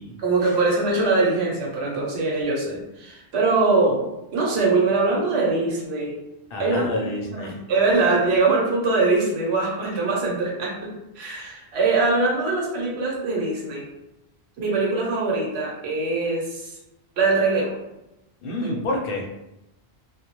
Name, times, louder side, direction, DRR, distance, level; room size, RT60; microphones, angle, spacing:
voice 1, 0.2-4.0 4.3-6.2 6.6-6.8 7.3-13.8 14.6-16.7 17.2-17.8 18.6-18.8, right 3 dB, 75° right, -2 dB, 1.0 m, -22 dB
voice 2, 6.5-7.5 18.4-19.3, left 2 dB, 65° left, 0 dB, 0.7 m, -28 dB
2.2 x 2.1 x 2.9 m, 0.92 s
omnidirectional pair, 1.1 m